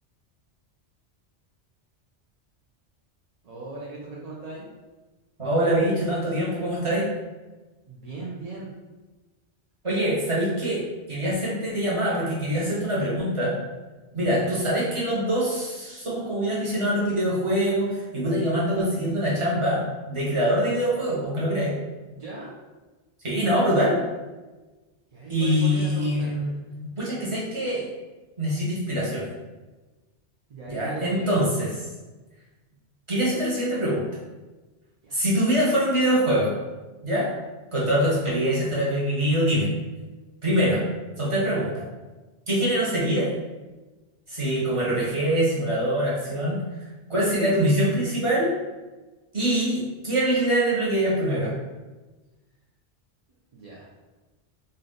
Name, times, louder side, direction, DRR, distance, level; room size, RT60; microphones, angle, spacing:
voice 1, 3.4-4.7 7.9-8.7 14.1-14.4 22.1-22.5 25.1-26.3 30.5-31.4 35.0-35.2 53.5-53.9, right 3 dB, 45° right, -5 dB, 0.5 m, -38 dB
voice 2, 5.4-7.1 9.8-10.8 11.1-13.5 14.1-21.7 23.2-24.0 25.3-26.5 27.0-27.8 28.4-29.2 30.7-31.7 33.1-34.0 35.1-36.5 37.0-37.3 37.7-39.7 40.4-40.8 41.2-41.8 42.5-43.3 44.3-46.6 47.1-48.5 49.3-51.5, right 1 dB, 25° right, -7 dB, 1.2 m, -24 dB
3.2 x 2.6 x 3.9 m, 1.2 s
omnidirectional pair, 1.2 m